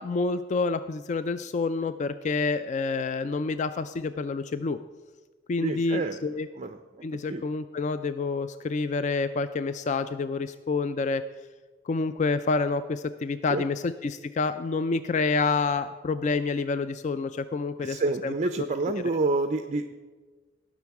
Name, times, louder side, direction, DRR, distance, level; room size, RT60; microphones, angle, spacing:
voice 1, 0.0-4.8 5.5-6.5 7.0-11.2 11.8-18.3 18.6-18.7, left 4 dB, 40° left, 12 dB, 0.3 m, -28 dB
voice 2, 5.6-6.2 6.6-6.8 7.3-7.4 13.5-13.6 17.8-19.9, right 3 dB, 35° right, 8 dB, 0.5 m, -28 dB
18.5 x 6.1 x 4.7 m, 1.3 s
head